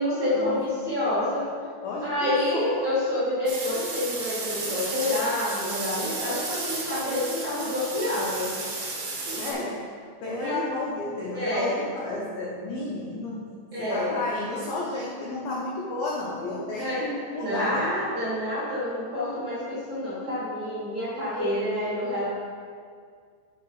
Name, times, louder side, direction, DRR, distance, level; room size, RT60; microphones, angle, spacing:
voice 1, 0.0-1.4 2.0-8.5 8.9-9.0 9.3-9.4 10.4-10.6 11.3-11.7 13.7-14.1 16.8-22.3, left 1 dB, 35° right, -11 dB, 1.9 m, -28 dB
voice 2, 1.8-2.8 9.4-9.8 10.2-13.5 13.9-17.9, left 2 dB, 85° left, -4 dB, 2.1 m, -32 dB
sound 1, 3.5-9.5, right 3 dB, 60° right, 2.0 m, -33 dB
8.4 x 6.1 x 5.5 m, 2.1 s
omnidirectional pair, 5.7 m